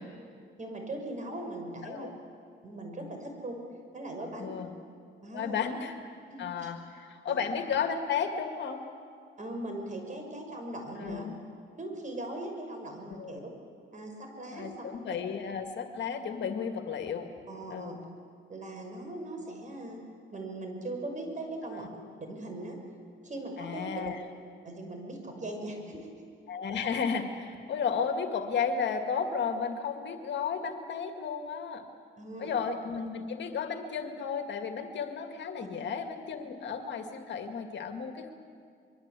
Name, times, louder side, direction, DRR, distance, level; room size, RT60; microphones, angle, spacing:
voice 1, 0.6-2.1 2.6-3.6 3.9-4.6 5.2-5.6 6.3-6.5 7.3-7.4 9.4-11.2 11.8-13.4 13.9-14.9 17.5-18.0 18.5-20.0 20.3-21.9 22.2-22.8 23.2-23.9 24.6-26.1 32.2-32.5 35.6-35.8, right 1 dB, 40° right, 3 dB, 6.0 m, -39 dB
voice 2, 4.3-4.7 5.3-6.0 6.4-8.9 11.0-11.3 13.2-13.4 14.5-17.3 17.7-18.0 21.7-21.8 23.6-24.2 26.5-31.8 32.4-38.3, left 6 dB, 65° left, 5 dB, 2.2 m, -33 dB
24.5 x 22.5 x 8.4 m, 2.2 s
cardioid pair, 90°, 20 cm